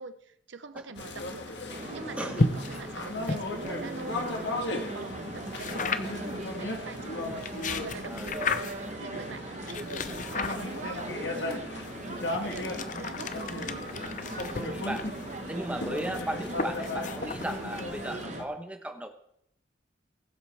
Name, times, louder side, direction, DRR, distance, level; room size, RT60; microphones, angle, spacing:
voice 1, 0.0-1.6 1.9-13.9, right 3 dB, 75° right, 11 dB, 0.8 m, -45 dB
sound 1, 1.0-18.5, left 2 dB, 65° left, 1.6 m, -37 dB
sound 2, 1.7-18.4, right 2 dB, 40° right, 1.0 m, -40 dB
sound 3, 2.3-4.5 5.6-6.3 7.2-8.9 9.7-11.0 11.8-18.2, left 3 dB, 40° left, 0.7 m, -35 dB
voice 2, 8.1-8.6 14.6-15.0 15.5-19.1, right 1 dB, 5° right, 5 dB, 1.0 m, -36 dB
20.5 x 8.0 x 3.5 m, 0.74 s
head